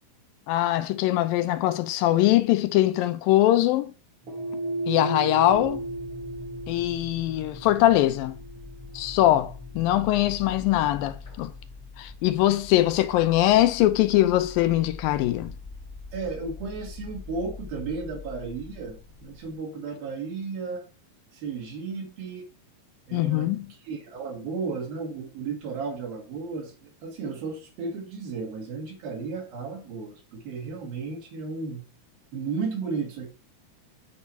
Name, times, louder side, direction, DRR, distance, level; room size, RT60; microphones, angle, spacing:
voice 1, 0.5-3.9 4.9-5.8 6.7-8.4 8.9-11.5 12.0-15.5 23.1-23.7, left 14 dB, 80° left, 2.2 m, -22 dB
sound 1, 4.2-12.7, right 1 dB, 45° right, 2.0 m, -36 dB
sound 2, 5.5-19.5, left 4 dB, 45° left, 0.6 m, -44 dB
voice 2, 16.1-20.9 21.3-22.5 23.1-23.5 23.8-31.8 32.3-33.3, right 4 dB, 75° right, 4.0 m, -34 dB
9.5 x 4.8 x 7.1 m
omnidirectional pair, 4.3 m